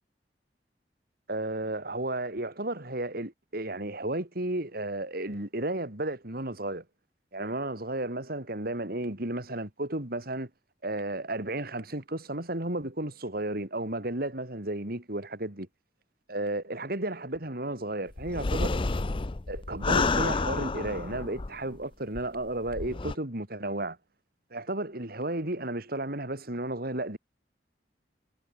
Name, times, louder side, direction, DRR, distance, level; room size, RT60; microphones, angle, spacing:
voice 1, 1.3-6.8 7.3-10.5 10.8-15.7 16.3-18.8 19.5-24.0 24.5-27.2, right 1 dB, 55° right, 3.4 m, -33 dB
sound 1, 18.2-21.8 22.1-22.2 22.7-23.1, left 3 dB, 30° left, 0.6 m, -29 dB
head